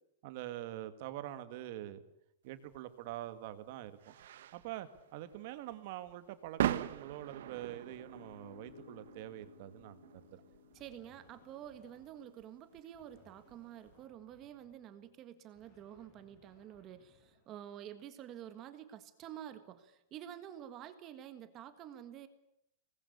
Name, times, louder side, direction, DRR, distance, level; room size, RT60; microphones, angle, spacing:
voice 1, 0.2-2.0 2.4-4.1 4.5-10.4, right 13 dB, 40° right, 12 dB, 2.0 m, -45 dB
sound 1, 2.7-14.0, right 12 dB, 65° right, 1.5 m, -43 dB
Piano, 7.3-15.4, left 8 dB, 70° left, 2.8 m, -62 dB
sound 2, 10.7-12.3 12.9-18.1, left 2 dB, 20° left, 7.1 m, -68 dB
voice 2, 10.7-22.3, right 10 dB, 20° right, 10 dB, 1.6 m, -49 dB
25.5 x 20.5 x 8.5 m, 0.78 s
supercardioid pair, 180°, 0 cm